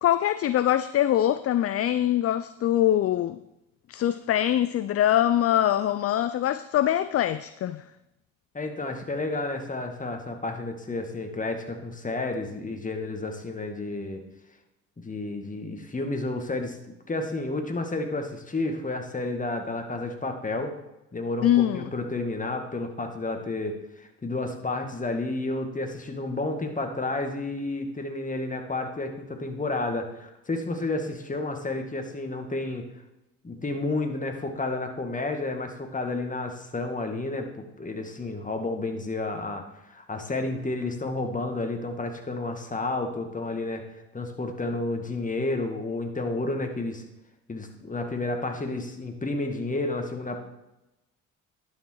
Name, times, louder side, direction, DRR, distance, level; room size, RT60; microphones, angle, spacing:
voice 1, 0.0-3.4 3.9-7.8 21.4-21.9, left 12 dB, 40° left, 13 dB, 0.5 m, -23 dB
voice 2, 8.5-14.2 15.0-20.7 21.1-32.9 33.4-43.8 44.1-47.0 47.5-50.4, left 2 dB, 20° left, 4 dB, 2.0 m, -31 dB
11.0 x 6.5 x 4.7 m, 0.92 s
supercardioid pair, 65°, 37 cm